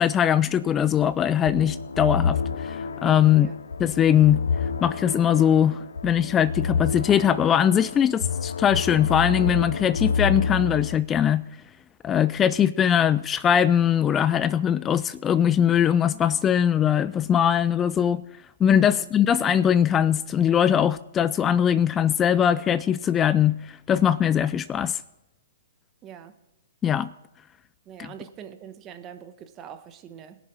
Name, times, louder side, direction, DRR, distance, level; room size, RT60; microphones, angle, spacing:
voice 1, 0.0-3.5 3.8-4.4 4.8-11.5 12.0-18.2 18.6-25.0 26.8-27.1 28.0-28.1, left 9 dB, 20° left, 0.3 m, -21 dB
sound 1, 1.5-11.0, left 5 dB, 80° left, 0.6 m, -29 dB
voice 2, 26.0-26.3 27.9-30.4, right 9 dB, 30° right, 1.2 m, -43 dB
21.0 x 7.3 x 4.7 m
hypercardioid pair, 125°, 0 cm